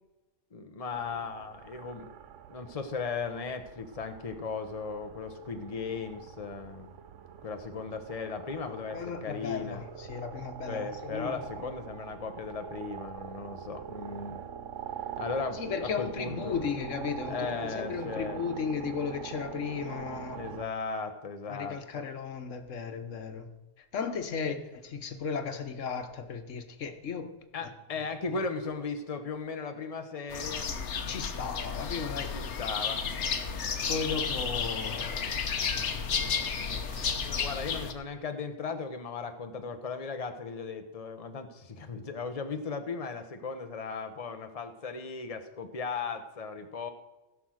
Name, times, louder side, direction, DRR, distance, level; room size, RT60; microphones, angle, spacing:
voice 1, 0.5-2.1 2.5-6.9 7.4-9.8 10.7-14.4 15.2-16.5 17.3-18.4 20.3-22.1 24.4-24.5 27.5-30.7 32.3-33.0 37.2-46.9, left 4 dB, 30° left, 7 dB, 1.0 m, -37 dB
sound 1, 0.9-20.7, right 8 dB, 80° right, 1.1 m, -44 dB
voice 2, 8.9-11.7 15.5-20.4 21.5-23.5 23.9-27.3 27.6-27.7 28.3-28.4 31.1-32.4 33.9-35.4 35.7-37.2, left 6 dB, 85° left, 8 dB, 1.4 m, -36 dB
sound 2, 30.3-37.9, left 6 dB, 70° left, 1.2 m, -32 dB
sound 3, 32.4-37.4, right 1 dB, 25° right, 1.8 m, -52 dB
15.5 x 6.2 x 6.4 m, 1.0 s
omnidirectional pair, 1.3 m